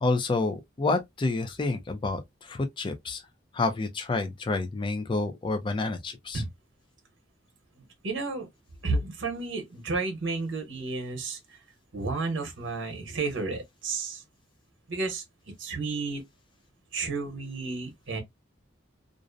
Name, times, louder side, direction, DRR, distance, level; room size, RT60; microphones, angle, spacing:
voice 1, 0.0-3.2 3.5-6.4, left 3 dB, 25° left, 0.3 m, -29 dB
voice 2, 7.8-8.5 8.8-11.4 11.9-14.2 14.9-15.2 15.6-16.2 16.9-18.2, right 3 dB, 65° right, 0.8 m, -32 dB
2.5 x 2.0 x 2.4 m
head